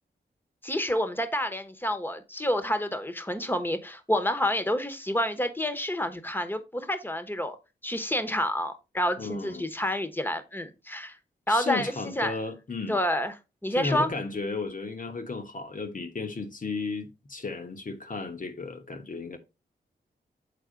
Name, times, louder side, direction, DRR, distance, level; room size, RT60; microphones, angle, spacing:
voice 1, 0.6-7.6 7.8-11.2 11.5-12.3 12.9-13.3 13.6-14.1, left 1 dB, 10° left, 1.1 m, -28 dB
voice 2, 9.2-9.7 11.5-13.0 13.7-19.4, left 3 dB, 45° left, 1.2 m, -34 dB
6.9 x 4.2 x 3.8 m
cardioid pair, 50°, 19 cm